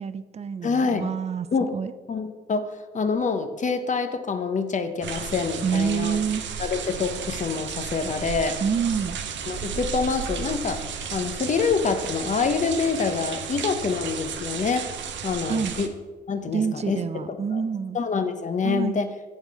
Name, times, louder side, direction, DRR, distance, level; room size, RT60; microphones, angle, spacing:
voice 1, 0.0-1.5 1.7-1.9 5.6-6.4 8.6-9.2 15.5-15.7 16.5-18.0 18.6-19.0, right 6 dB, 35° right, 13 dB, 0.5 m, -27 dB
voice 2, 0.6-1.1 1.5-1.8 2.1-6.2 6.6-8.6 9.5-10.8 11.1-14.9 15.2-15.9 16.3-17.2 17.5-17.6 17.9-19.1, left 5 dB, 40° left, 8 dB, 0.9 m, -26 dB
sound 1, 5.0-15.9, right 7 dB, 70° right, 0.9 m, -33 dB
8.2 x 6.4 x 4.8 m, 1.3 s
cardioid pair, 90°, 20 cm